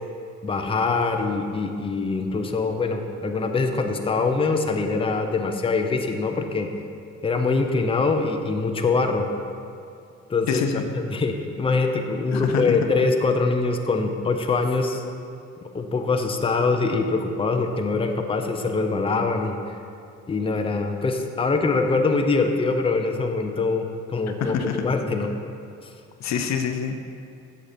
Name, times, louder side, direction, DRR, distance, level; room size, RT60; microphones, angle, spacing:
voice 1, 0.4-6.7 7.2-9.3 10.3-10.6 11.1-15.0 15.7-19.8 20.3-24.6 24.8-25.3 25.8-25.9, left 3 dB, 20° left, 4 dB, 0.6 m, -23 dB
voice 2, 10.5-10.8 12.3-12.8 24.4-24.8 26.2-27.1, left 6 dB, 65° left, 6 dB, 0.6 m, -26 dB
7.7 x 6.6 x 4.3 m, 2.6 s
cardioid pair, 90°, 30 cm